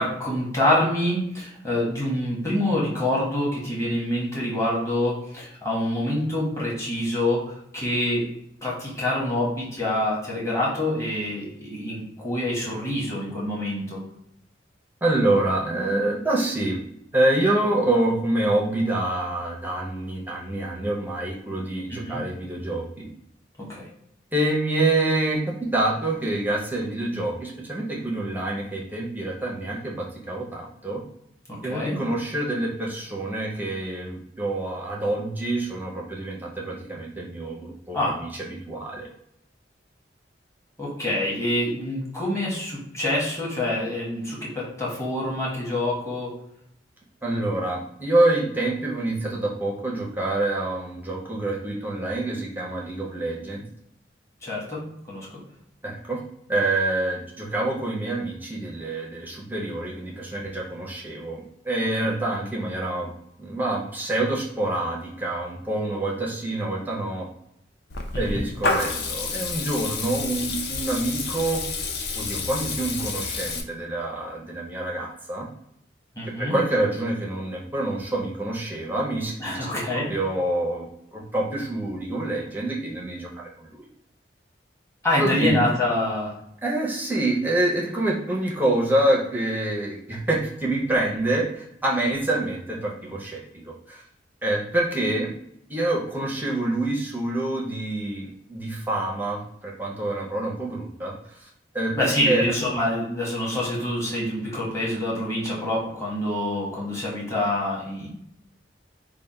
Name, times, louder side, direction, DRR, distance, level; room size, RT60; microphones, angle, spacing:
voice 1, 0.0-8.3 8.6-14.0 21.9-22.2 23.7-23.8 31.5-32.0 37.9-38.2 40.8-46.3 54.4-55.3 62.0-62.2 68.1-68.4 76.2-76.6 79.4-80.1 85.0-86.3 102.0-108.1, left 1 dB, 15° left, -5 dB, 1.1 m, -26 dB
voice 2, 15.0-16.8 17.1-23.1 24.3-31.0 31.6-39.1 47.2-53.6 55.8-56.2 56.5-63.1 63.4-67.3 68.2-71.6 72.1-75.5 76.4-83.3 83.6-83.9 85.2-85.6 86.6-94.0 94.4-95.3 95.7-101.5 101.7-102.4, right 2 dB, 10° right, -2 dB, 0.5 m, -26 dB
Water tap faucet / Liquid, 67.9-73.6, left 4 dB, 65° left, 0.5 m, -29 dB
3.3 x 2.1 x 4.0 m, 0.75 s
head